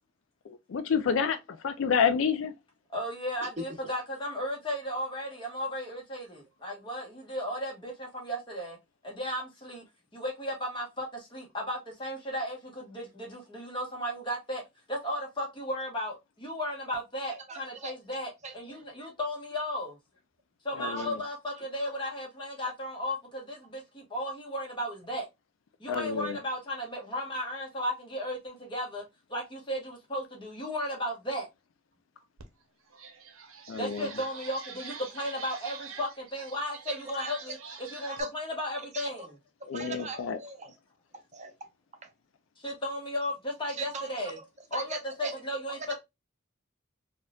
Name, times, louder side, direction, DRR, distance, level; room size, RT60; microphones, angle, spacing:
voice 1, 0.5-1.4 1.6-2.5 20.8-21.2 25.9-26.4 33.7-34.1 39.7-40.4, left 6 dB, 65° left, 0.4 m, -28 dB
voice 2, 2.9-8.8 9.0-9.8 10.1-14.6 14.9-20.0 20.6-25.3 25.8-31.5 33.8-39.3 42.6-44.4 44.7-46.0, equal, 25° left, 1.2 m, -35 dB
voice 3, 17.5-17.9 18.4-18.6 21.5-21.6 36.9-37.3 38.1-38.3 38.9-39.3 39.7-40.7 41.3-41.5 43.8-44.4 44.7-45.4 45.7-46.0, right 3 dB, 35° right, 0.7 m, -39 dB
sound 1, 32.4-32.5 32.9-38.2, right 6 dB, 75° right, 0.7 m, -46 dB
4.2 x 2.4 x 2.2 m
head